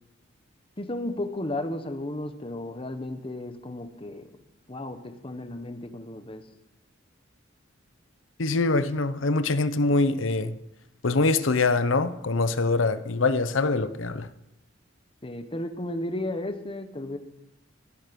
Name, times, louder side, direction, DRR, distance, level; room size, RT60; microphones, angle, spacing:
voice 1, 0.8-4.3 4.7-6.4 15.2-17.2, left 1 dB, 25° left, 1.2 m, -34 dB
voice 2, 8.4-10.5 11.0-14.3, left 3 dB, 75° left, 0.8 m, -24 dB
17.5 x 10.5 x 5.3 m
head